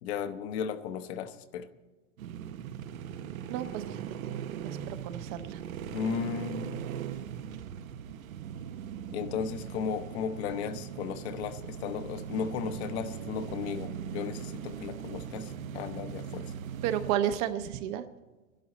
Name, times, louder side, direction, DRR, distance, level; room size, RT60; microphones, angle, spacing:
voice 1, 0.0-1.7 5.9-6.9 9.1-16.5, left 7 dB, 50° left, 9 dB, 1.0 m, -35 dB
sound 1, 2.2-17.1, right 8 dB, 90° right, 0.9 m, -39 dB
voice 2, 3.5-3.8 4.9-5.6 16.8-18.0, right 10 dB, 35° right, 10 dB, 0.7 m, -31 dB
20.5 x 12.0 x 4.2 m, 1.2 s
supercardioid pair, 145°, 40 cm